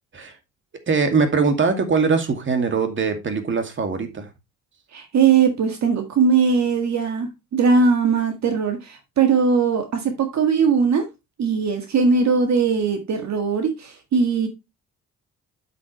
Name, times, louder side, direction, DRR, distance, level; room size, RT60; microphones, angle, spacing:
voice 1, 0.9-4.3, right 5 dB, 40° right, 2.3 m, -21 dB
voice 2, 4.9-11.1 11.4-14.5, right 5 dB, 65° right, 1.7 m, -20 dB
8.2 x 7.8 x 3.2 m
cardioid pair, 90°, 30 cm